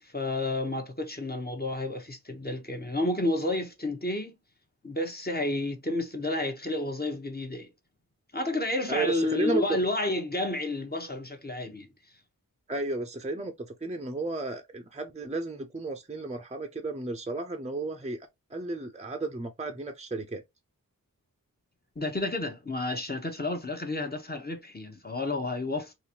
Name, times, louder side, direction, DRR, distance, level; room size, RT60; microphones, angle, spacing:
voice 1, 0.0-4.3 4.8-7.7 8.3-11.9 22.0-25.9, left 2 dB, 25° left, 0.9 m, -31 dB
voice 2, 8.9-9.6 12.7-20.4, right 3 dB, 20° right, 0.5 m, -33 dB
3.9 x 2.5 x 2.8 m
wide cardioid pair, 45°, 36 cm